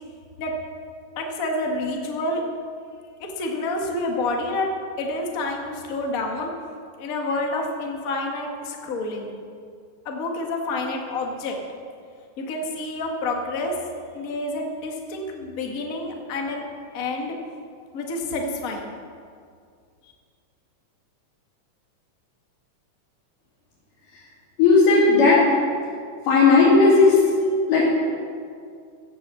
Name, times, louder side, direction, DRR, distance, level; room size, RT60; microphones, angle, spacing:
voice 1, 1.2-2.4 3.2-4.7 5.0-6.5 7.0-9.3 10.0-11.5 12.4-13.7 14.1-16.6 16.9-17.3 17.9-18.9, left 2 dB, 40° left, 1 dB, 1.3 m, -28 dB
voice 2, 24.6-25.4 26.3-27.2 27.7-27.8, left 4 dB, 85° left, -9 dB, 4.4 m, -15 dB
15.0 x 7.6 x 7.5 m, 2.2 s
omnidirectional pair, 3.7 m